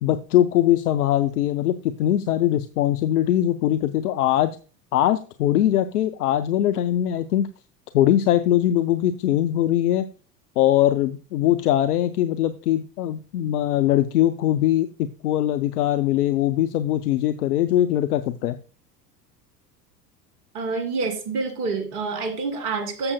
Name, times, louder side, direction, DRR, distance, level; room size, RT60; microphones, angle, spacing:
voice 1, 0.0-4.5 4.9-7.5 7.9-10.1 10.6-14.9 15.2-18.6, left 12 dB, 65° left, 10 dB, 0.7 m, -21 dB
voice 2, 20.5-23.1, right 4 dB, 65° right, 7 dB, 2.1 m, -27 dB
13.5 x 7.0 x 2.2 m, 0.37 s
figure-of-eight pair, 70°, 49 cm